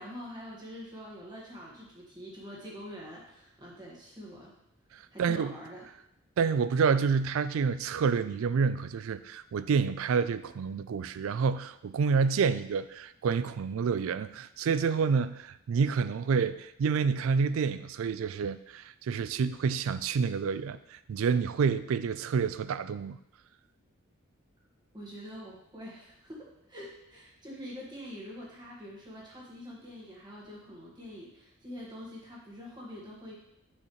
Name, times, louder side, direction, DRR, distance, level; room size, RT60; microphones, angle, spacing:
voice 1, 0.0-4.5 5.1-5.9 24.9-33.3, equal, 20° right, -4 dB, 1.6 m, -45 dB
voice 2, 4.9-5.5 6.4-23.2, right 5 dB, 75° right, 14 dB, 0.3 m, -28 dB
6.6 x 5.5 x 3.1 m, 0.80 s
head